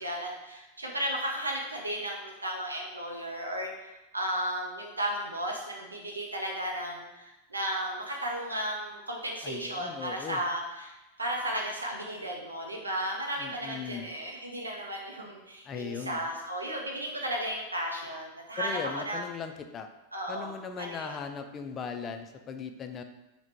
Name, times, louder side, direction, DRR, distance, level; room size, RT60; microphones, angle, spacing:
voice 1, 0.0-10.9 11.2-19.2 20.1-20.5 20.8-21.2, right 1 dB, 80° right, 0 dB, 0.4 m, -34 dB
voice 2, 9.4-10.4 13.4-14.1 15.6-16.3 18.6-19.9 20.3-23.0, left 6 dB, 25° left, 6 dB, 0.3 m, -38 dB
3.5 x 2.1 x 4.3 m, 1.0 s
figure-of-eight pair, 90°, 0 cm